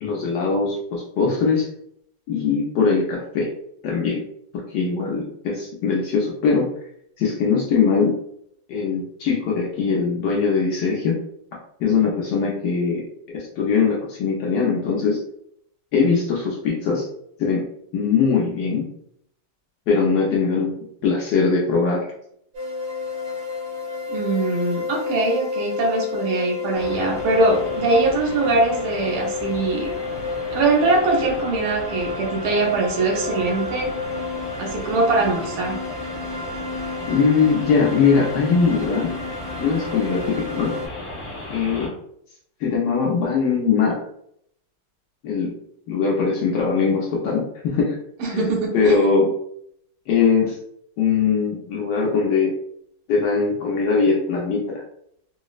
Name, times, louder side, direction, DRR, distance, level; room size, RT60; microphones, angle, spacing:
voice 1, 0.0-1.7 2.3-3.5 3.8-4.2 4.5-6.7 7.2-8.2 8.7-11.2 11.8-13.0 13.3-15.2 15.9-17.1 17.4-17.6 17.9-18.9 19.9-20.8 21.0-22.0 37.1-39.1 39.6-40.7 41.5-41.9 42.6-44.0 45.2-45.5 45.9-48.0 48.3-49.3 50.1-50.6 51.0-52.5 53.1-54.8, left 5 dB, 70° left, -3 dB, 1.0 m, -21 dB
sound 1, 22.5-40.9, left 4 dB, 65° right, 1.8 m, -30 dB
voice 2, 24.1-29.9 30.5-33.9 34.6-35.8 48.2-49.1, right 2 dB, 90° right, -1 dB, 1.7 m, -22 dB
sound 2, 26.7-41.9, left 1 dB, 45° left, 0.6 m, -36 dB
4.1 x 2.0 x 2.3 m, 0.71 s
omnidirectional pair, 2.4 m